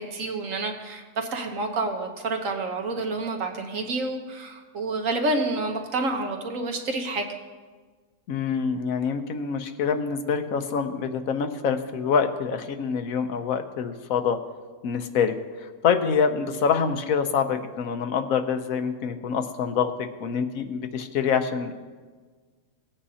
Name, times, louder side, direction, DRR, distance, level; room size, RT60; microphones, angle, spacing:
voice 1, 0.0-7.2, right 2 dB, 70° right, 4 dB, 1.5 m, -29 dB
voice 2, 8.3-14.4 14.8-21.8, left 6 dB, 80° left, 7 dB, 1.2 m, -26 dB
18.0 x 8.6 x 2.8 m, 1.4 s
omnidirectional pair, 1.4 m